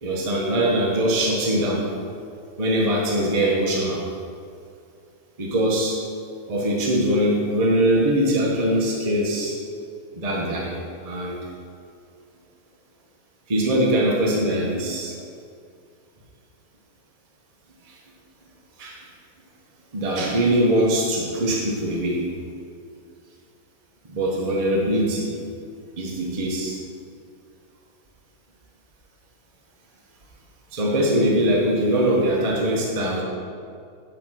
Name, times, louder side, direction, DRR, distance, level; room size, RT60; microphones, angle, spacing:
voice 1, 0.0-1.9 2.6-4.0 5.4-6.0 6.5-9.6 10.1-11.5 13.5-15.1 17.8-18.0 18.8-19.0 19.9-22.2 24.1-25.3 26.0-26.8 30.7-33.2, right 1 dB, 30° right, -3 dB, 0.8 m, -22 dB
9.7 x 3.8 x 6.1 m, 2.4 s
omnidirectional pair, 1.9 m